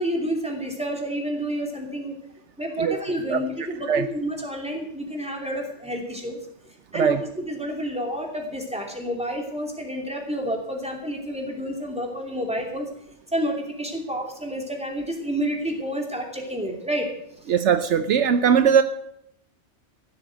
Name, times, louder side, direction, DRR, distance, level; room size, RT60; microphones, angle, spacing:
voice 1, 0.0-2.2 2.6-6.4 6.9-12.9 13.3-17.1, equal, 5° right, 1 dB, 2.9 m, -29 dB
voice 2, 17.5-18.8, right 7 dB, 70° right, 11 dB, 1.0 m, -19 dB
15.0 x 8.6 x 7.6 m, 0.76 s
omnidirectional pair, 1.3 m